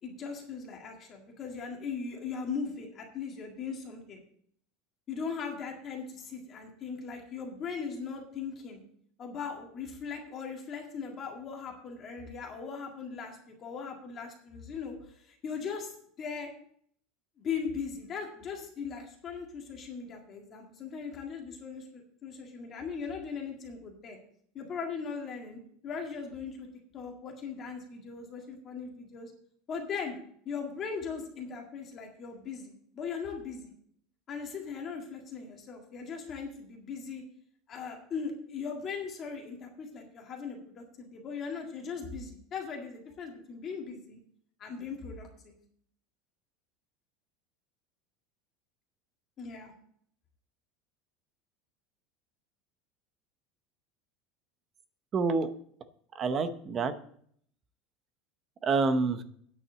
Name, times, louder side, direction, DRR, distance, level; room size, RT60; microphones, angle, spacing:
voice 1, 0.0-4.2 5.1-8.8 9.2-16.5 17.4-24.2 24.5-26.7 26.9-29.3 29.7-30.2 30.5-33.7 34.3-37.2 37.7-44.2 44.6-45.6 49.4-49.7, left 5 dB, 25° left, 1 dB, 1.8 m, -39 dB
voice 2, 55.1-55.5 56.1-56.9 58.6-59.2, right 4 dB, 25° right, 11 dB, 0.7 m, -27 dB
9.6 x 6.0 x 7.8 m, 0.62 s
cardioid pair, 175°, 0 cm